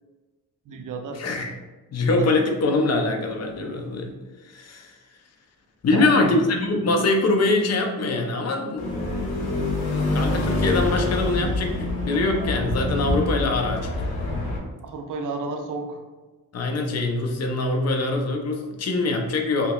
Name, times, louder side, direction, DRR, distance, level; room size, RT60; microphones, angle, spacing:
voice 1, 0.7-1.2 2.2-2.3 5.9-6.3 14.8-16.0, right 3 dB, 50° right, 4 dB, 0.6 m, -31 dB
voice 2, 1.2-1.5 1.9-4.1 4.5-4.9 5.8-8.8 10.1-13.9 16.5-19.7, left 2 dB, 40° left, 3 dB, 0.6 m, -23 dB
sound 1, 8.8-14.6, left 2 dB, 70° left, 1.0 m, -26 dB
5.6 x 2.1 x 2.3 m, 1.2 s
cardioid pair, 65°, 41 cm